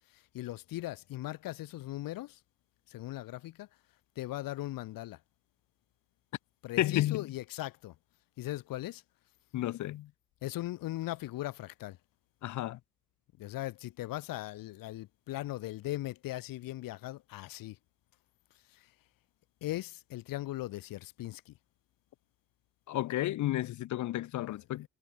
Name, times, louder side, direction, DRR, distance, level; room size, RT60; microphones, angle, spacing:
voice 1, 0.1-2.4 2.9-3.7 4.2-5.2 6.6-7.9 8.4-9.0 10.4-12.0 13.4-17.8 18.7-18.9 19.6-21.5, left 16 dB, 75° left, 1.8 m, -39 dB
voice 2, 6.8-7.3 9.5-10.1 12.4-12.8 22.9-24.9, left 15 dB, 60° left, 1.0 m, -32 dB
cardioid pair, 175°, 34 cm